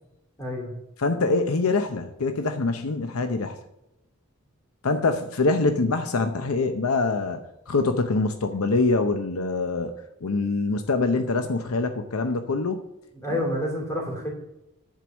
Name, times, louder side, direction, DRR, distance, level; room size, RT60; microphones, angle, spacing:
voice 1, 0.4-0.7 13.1-14.3, left 1 dB, 15° left, -2 dB, 3.0 m, -28 dB
voice 2, 1.0-3.5 4.8-7.4 7.7-9.9 10.2-12.8, left 3 dB, 75° left, 7 dB, 0.7 m, -24 dB
10.5 x 4.7 x 6.2 m, 0.85 s
head